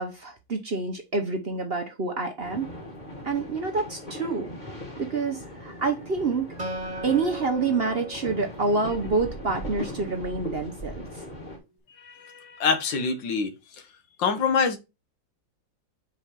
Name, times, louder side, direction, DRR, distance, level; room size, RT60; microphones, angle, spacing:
voice 1, 0.0-2.7 3.2-4.5 5.0-6.5 7.0-11.1, right 3 dB, 45° right, 0.9 m, -27 dB
sound 1, 2.4-11.6, equal, 25° left, 1.9 m, -39 dB
Acoustic guitar, 6.6-10.0, right 1 dB, 25° right, 1.5 m, -39 dB
voice 2, 12.0-13.5 14.2-14.8, left 5 dB, 85° left, 1.9 m, -25 dB
4.8 x 4.1 x 5.6 m
omnidirectional pair, 2.0 m